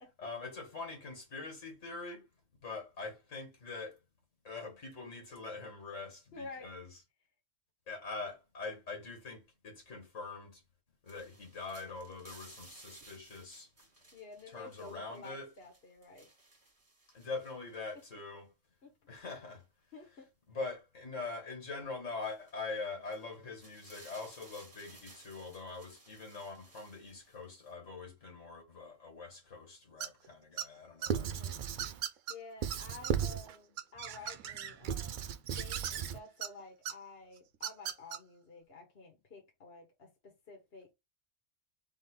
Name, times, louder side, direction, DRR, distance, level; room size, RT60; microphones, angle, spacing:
voice 1, 0.2-2.3 2.6-4.0 4.4-7.0 7.9-10.6 11.0-13.7 14.5-15.5 17.1-18.5 19.1-19.6 20.5-31.7, left 3 dB, 75° left, 2.2 m, -43 dB
voice 2, 6.3-6.7 14.1-16.3 18.8-18.9 19.9-20.3 31.1-31.6 31.9-40.9, left 3 dB, 55° left, 1.5 m, -51 dB
sound 1, 11.1-18.1 19.6-19.7 22.2-22.5 23.0-27.7, right 2 dB, 30° right, 1.5 m, -59 dB
sound 2, 30.0-30.3 30.6-31.1 31.8-32.4 32.7-32.8 33.0-33.1 33.5-34.7 35.8-36.5 36.9-37.0 37.5-38.2, right 9 dB, 80° right, 1.0 m, -38 dB
Squeak / Writing, 31.1-32.0 32.6-33.5 34.0-36.2, right 8 dB, 60° right, 0.5 m, -36 dB
3.8 x 3.6 x 3.8 m
omnidirectional pair, 1.3 m